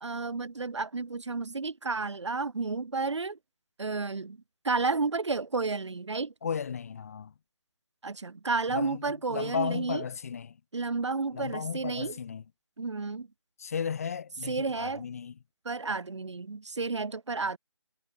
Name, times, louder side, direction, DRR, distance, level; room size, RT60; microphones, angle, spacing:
voice 1, 0.0-3.4 3.8-4.4 4.6-6.3 8.0-10.0 10.7-12.2 12.8-13.3 14.5-15.0 15.6-17.6, right 4 dB, 70° right, 2.3 m, -31 dB
voice 2, 6.4-7.3 8.7-10.6 11.3-12.4 13.6-15.3, left 7 dB, 30° left, 0.9 m, -35 dB
figure-of-eight pair, 165°, 15 cm